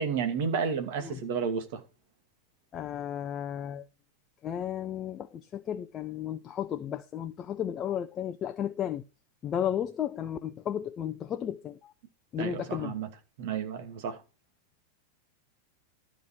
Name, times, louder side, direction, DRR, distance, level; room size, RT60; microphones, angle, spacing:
voice 1, 0.0-1.8 12.4-13.1 13.4-14.2, right 6 dB, 50° right, 2.3 m, -31 dB
voice 2, 2.7-3.9 4.4-9.0 9.4-11.9 12.3-12.9, left 9 dB, 25° left, 0.7 m, -34 dB
13.0 x 5.1 x 6.2 m
figure-of-eight pair, 90°, 0 cm